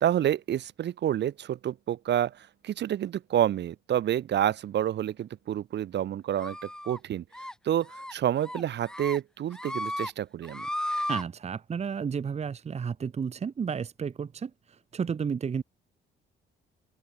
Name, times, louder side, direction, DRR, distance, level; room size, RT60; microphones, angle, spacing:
voice 1, 0.0-7.2 7.6-10.7, right 11 dB, 60° right, 0.9 m, -28 dB
sound 1, 6.4-7.0 7.3-7.5 7.9-8.1 8.4-9.2 9.5-10.1 10.4-11.2, left 1 dB, 5° left, 0.5 m, -34 dB
voice 2, 11.1-15.6, right 6 dB, 35° right, 0.8 m, -32 dB
cardioid pair, 90°, 20 cm